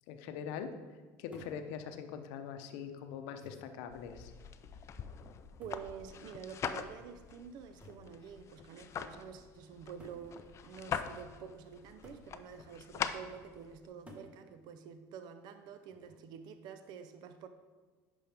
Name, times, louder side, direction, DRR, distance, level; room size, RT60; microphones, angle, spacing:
voice 1, 0.1-0.7 1.2-4.3, left 7 dB, 75° left, 0.7 m, -42 dB
sound 1, 1.3-1.7 2.7-2.8 3.4-3.8 5.6-6.0 7.8-8.1 9.2-9.3 10.0-10.3 12.0-12.3 14.1-14.4 15.9-16.3, left 1 dB, 15° right, 1.3 m, -54 dB
sound 2, 3.9-13.9, left 7 dB, 35° left, 0.4 m, -43 dB
voice 2, 5.6-17.5, right 7 dB, 60° right, 0.5 m, -48 dB
10.0 x 5.3 x 3.4 m
supercardioid pair, 120°, 8 cm